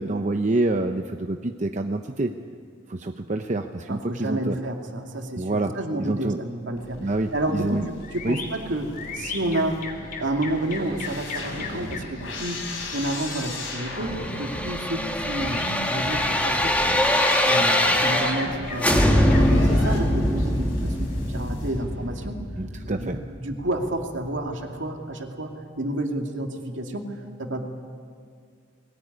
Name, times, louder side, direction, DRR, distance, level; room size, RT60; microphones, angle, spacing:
voice 1, 0.0-2.4 2.9-4.6 5.4-6.4 7.0-7.8 8.2-8.4 22.6-23.2, right 2 dB, 40° right, 5 dB, 0.7 m, -27 dB
voice 2, 3.9-9.8 10.2-12.6 12.9-15.6 15.9-16.7 17.4-22.5 22.9-23.1 23.4-27.7, right 1 dB, 70° right, 2 dB, 2.5 m, -30 dB
sound 1, 6.7-22.3, left 1 dB, 85° left, 5.0 m, -36 dB
sound 2, 8.0-21.3, left 4 dB, 45° left, 3.4 m, -39 dB
sound 3, 13.8-18.5 18.8-23.7 24.0-24.1, left 1 dB, 10° left, 1.6 m, -23 dB
21.0 x 19.0 x 9.7 m, 2.1 s
head